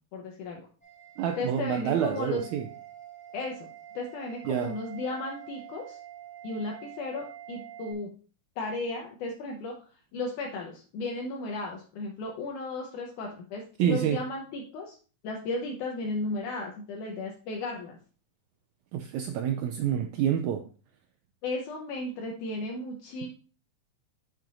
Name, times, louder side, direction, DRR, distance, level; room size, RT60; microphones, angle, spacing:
voice 1, 0.1-0.6 1.4-2.5 3.3-3.7 4.0-6.0 6.4-8.1 8.6-9.7 10.1-15.0 15.2-18.0 21.4-23.3, left 2 dB, 75° left, 2.3 m, -35 dB
sound 1, 0.8-7.9, right 11 dB, 10° left, 3.0 m, -47 dB
voice 2, 1.2-2.7 4.4-4.7 13.8-14.2 18.9-20.6, right 9 dB, 85° right, 1.7 m, -28 dB
7.6 x 7.3 x 2.5 m
omnidirectional pair, 3.8 m